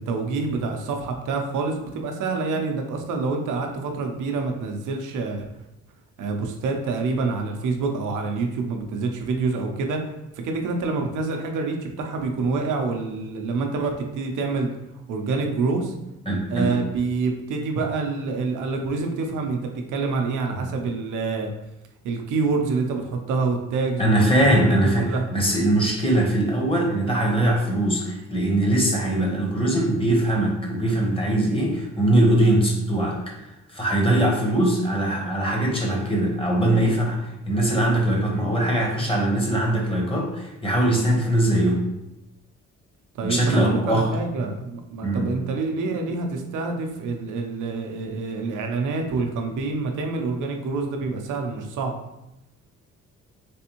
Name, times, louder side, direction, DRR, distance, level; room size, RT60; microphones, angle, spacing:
voice 1, 0.0-5.5 6.2-10.0 10.4-14.7 15.1-15.9 16.5-21.5 22.0-25.3 43.1-51.9, right 4 dB, 80° right, 3 dB, 0.7 m, -27 dB
voice 2, 16.3-16.7 24.0-33.3 33.7-41.8 43.2-44.1 45.0-45.3, right 1 dB, 20° left, -1 dB, 1.0 m, -21 dB
3.4 x 3.3 x 2.9 m, 0.91 s
cardioid pair, 90°, 30 cm